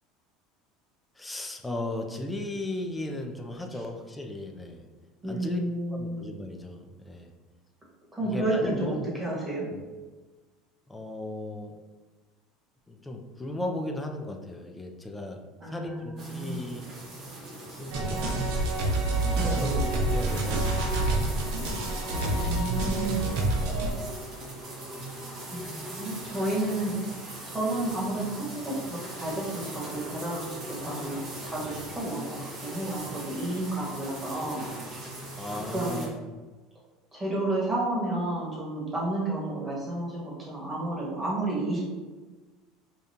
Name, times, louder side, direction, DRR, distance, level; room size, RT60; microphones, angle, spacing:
voice 1, 1.2-4.8 5.3-5.6 5.9-7.3 8.2-9.1 9.7-9.8 10.9-11.8 12.9-15.4 15.7-16.9 17.7-18.6 19.4-21.2 35.4-36.2 39.5-39.6, left 1 dB, 10° left, 2 dB, 0.4 m, -36 dB
voice 2, 5.2-6.2 8.1-9.7 15.6-16.7 19.3-19.9 22.1-23.4 25.5-27.2 27.5-34.7 35.5-36.1 37.1-41.8, right 2 dB, 10° right, -6 dB, 1.2 m, -31 dB
sound 1, 16.2-36.1, right 1 dB, 40° right, 1.2 m, -40 dB
sound 2, 17.9-23.9, right 2 dB, 70° right, 0.6 m, -27 dB
5.1 x 2.3 x 2.7 m, 1.3 s
cardioid pair, 150°, 0 cm